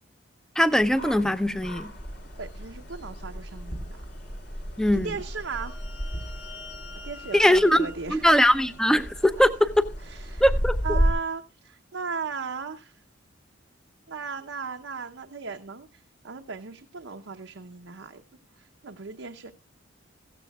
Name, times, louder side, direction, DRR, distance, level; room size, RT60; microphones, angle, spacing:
voice 1, 0.6-1.9 4.8-5.1 7.3-9.9 10.4-11.0, equal, 5° left, 0.5 m, -21 dB
sound 1, 0.7-11.1, equal, 60° left, 3.2 m, -33 dB
voice 2, 2.4-4.1 4.9-5.7 7.0-8.2 10.1-10.4 10.8-13.0 14.1-18.2 18.6-19.5, right 5 dB, 80° right, 0.7 m, -36 dB
sound 2, 5.0-9.4, left 3 dB, 85° left, 5.0 m, -47 dB
15.5 x 15.0 x 2.3 m
head